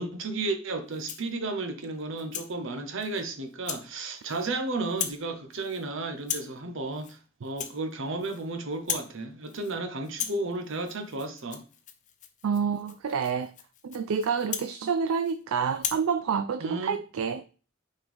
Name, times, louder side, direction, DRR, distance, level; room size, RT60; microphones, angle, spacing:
voice 1, 0.0-11.6 16.6-17.0, right 2 dB, 65° right, 1.0 m, -33 dB
Rattle (instrument), 0.9-1.3 1.8-2.5 3.0-3.2 3.6-3.9 4.2-4.6 4.9-5.3 5.5-5.8 6.2-6.6 6.9-7.2 7.5-8.5 8.7-9.2 9.5-9.8 10.0-15.4 15.7-16.1, left 9 dB, 40° left, 0.7 m, -38 dB
voice 2, 12.4-13.5 13.8-17.4, right 6 dB, 85° right, 0.4 m, -28 dB
6.1 x 4.5 x 3.5 m
head